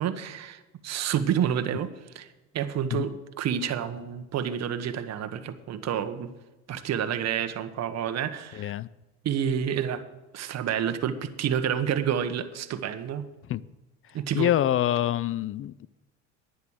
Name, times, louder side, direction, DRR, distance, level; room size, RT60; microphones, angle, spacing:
voice 1, 0.0-2.3 2.5-6.3 6.7-8.7 9.2-10.0 10.3-13.3 14.1-14.5, right 8 dB, 50° right, 1.3 m, -29 dB
voice 2, 8.5-8.9 13.5-13.6 14.3-15.9, left 12 dB, 40° left, 0.5 m, -26 dB
11.0 x 9.6 x 6.5 m
supercardioid pair, 90°, 33 cm